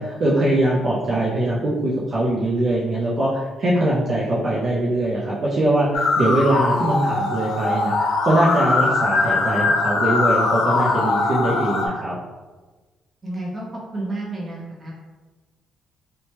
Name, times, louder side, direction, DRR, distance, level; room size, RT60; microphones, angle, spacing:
voice 1, 0.0-12.2, right 1 dB, 50° right, -7 dB, 0.5 m, -22 dB
sound 1, 5.9-11.9, left 3 dB, 75° left, 0.4 m, -21 dB
voice 2, 13.2-14.9, right 2 dB, 30° right, -4 dB, 0.9 m, -31 dB
2.9 x 2.2 x 2.9 m, 1.3 s
cardioid pair, 90°, 0 cm